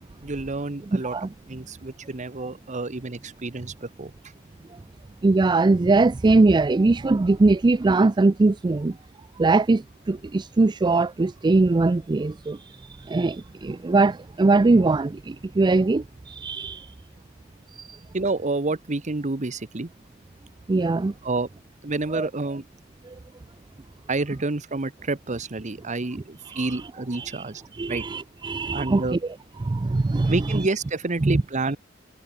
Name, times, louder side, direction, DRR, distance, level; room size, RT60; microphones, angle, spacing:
voice 1, 0.2-1.1 1.5-4.1 18.1-19.9 21.2-21.5 21.8-22.6 24.1-27.6 27.9-28.0 28.7-29.2 30.3-31.8, right 3 dB, 35° right, 1.0 m, -29 dB
voice 2, 0.9-1.3 5.2-8.9 9.4-9.8 10.1-16.9 17.8-18.0 20.7-21.1 22.1-22.3 26.4-26.9 27.1-27.4 27.7-29.2 29.6-30.7 31.2-31.4, right 3 dB, 20° right, 0.4 m, -21 dB
head